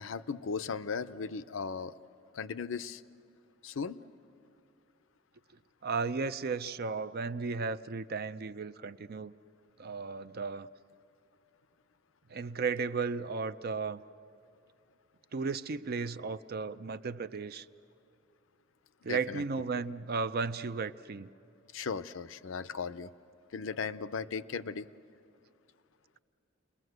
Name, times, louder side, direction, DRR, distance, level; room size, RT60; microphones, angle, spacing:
voice 1, 0.0-1.9 2.3-3.0 3.6-4.0 19.1-19.4 21.7-23.1 23.5-24.9, left 5 dB, 70° left, 14 dB, 0.6 m, -37 dB
voice 2, 5.8-9.3 9.8-10.7 12.3-14.0 15.3-17.7 19.0-21.3, right 4 dB, 50° right, 12 dB, 0.5 m, -34 dB
29.5 x 21.0 x 8.0 m, 2.7 s
head